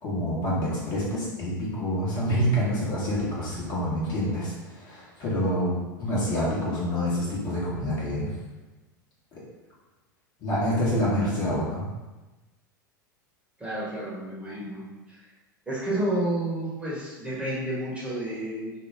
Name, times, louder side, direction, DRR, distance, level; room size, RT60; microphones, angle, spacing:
voice 1, 0.0-5.7 6.0-8.3 10.4-11.9, equal, 40° left, -7 dB, 1.2 m, -27 dB
voice 2, 13.6-15.3 15.7-18.7, right 1 dB, 10° right, -8 dB, 1.1 m, -30 dB
2.8 x 2.2 x 3.4 m, 1.1 s
figure-of-eight pair, 85°, 11 cm